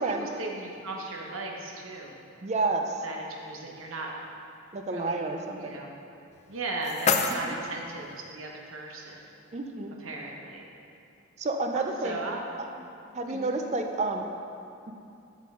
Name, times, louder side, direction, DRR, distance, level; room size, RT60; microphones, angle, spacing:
voice 1, 0.0-2.2 3.0-4.2 4.8-5.9 6.5-9.3 10.0-10.7 11.7-12.9 13.3-13.6, right 2 dB, 80° right, 0 dB, 1.1 m, -37 dB
voice 2, 2.4-3.0 4.7-5.8 7.4-7.5 9.5-9.9 11.4-12.2 13.1-14.3 14.9-15.0, right 3 dB, 35° right, 4 dB, 0.5 m, -30 dB
sound 1, 6.3-8.3, left 5 dB, 35° left, 0.4 m, -30 dB
7.6 x 7.3 x 3.7 m, 2.6 s
head